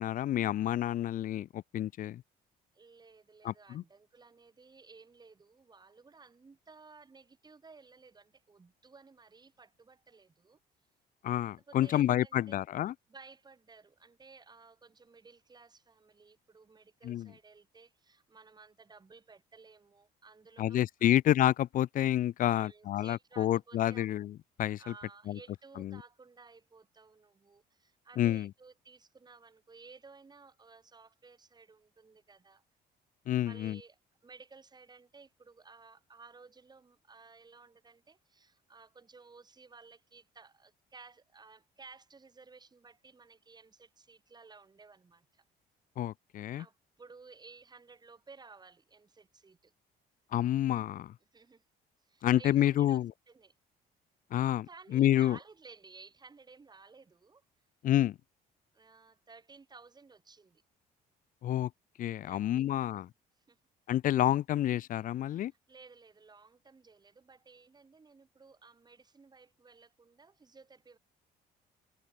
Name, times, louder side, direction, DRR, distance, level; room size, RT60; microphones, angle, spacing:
voice 1, 0.0-2.2 3.4-3.8 11.2-12.9 17.0-17.3 20.6-24.9 25.3-25.4 25.8-26.0 28.2-28.5 33.3-33.8 46.0-46.6 50.3-51.1 52.2-53.1 54.3-54.7 54.9-55.4 57.8-58.2 61.4-61.7 62.0-63.1 63.9-65.5, left 12 dB, 55° left, 0.6 m, -29 dB
voice 2, 2.7-10.6 11.4-12.7 13.1-21.2 22.4-24.2 24.8-32.6 33.4-45.4 46.6-49.7 51.3-51.6 52.0-53.0 53.3-53.5 54.7-57.4 58.7-60.6 62.3-63.0 63.5-63.6 65.7-71.0, right 4 dB, 25° right, 7.6 m, -56 dB
cardioid pair, 110°, 17 cm